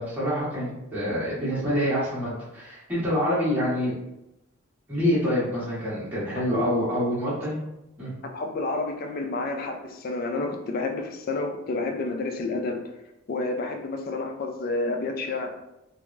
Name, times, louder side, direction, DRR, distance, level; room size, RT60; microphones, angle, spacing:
voice 1, 0.0-3.9 4.9-7.6 8.0-8.1, equal, 10° right, -10 dB, 1.0 m, -26 dB
voice 2, 8.3-12.8 13.3-15.5, left 3 dB, 45° left, 5 dB, 0.3 m, -29 dB
3.4 x 2.0 x 2.4 m, 0.90 s
head